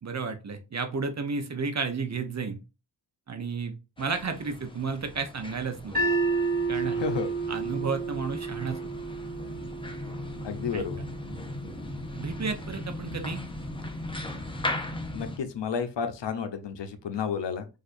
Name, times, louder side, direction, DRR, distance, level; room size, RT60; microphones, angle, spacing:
voice 1, 0.0-2.6 3.3-5.9 6.7-7.0 7.5-8.8 10.7-10.8 12.1-13.4, right 5 dB, 40° right, 7 dB, 0.6 m, -32 dB
sound 1, 4.0-15.4, left 1 dB, 10° left, 0.5 m, -38 dB
sound 2, 5.9-12.1, right 3 dB, 20° right, 1.8 m, -31 dB
voice 2, 6.7-7.3 10.4-11.0 15.1-17.7, left 6 dB, 70° left, 9 dB, 0.7 m, -32 dB
4.3 x 2.5 x 2.4 m, 0.29 s
wide cardioid pair, 120°, 44 cm